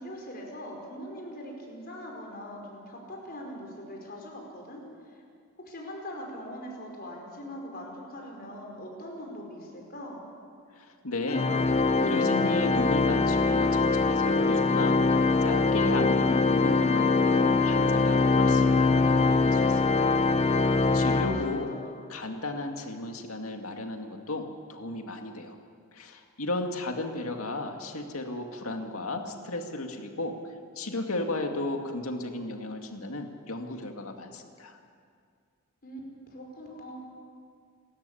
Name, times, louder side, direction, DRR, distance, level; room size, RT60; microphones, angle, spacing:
voice 1, 0.0-5.2 5.6-10.2 21.7-21.8 26.8-27.4 35.8-36.0 36.3-37.0, equal, 45° left, 0 dB, 5.0 m, -42 dB
voice 2, 10.7-11.6 12.0-15.1 15.4-20.1 20.4-21.7 22.1-25.6 25.9-30.5 30.8-34.8, left 2 dB, 75° left, 4 dB, 2.2 m, -34 dB
Organ, 11.3-21.9, left 3 dB, 30° left, 0.6 m, -23 dB
28.5 x 13.5 x 8.5 m, 2.2 s
head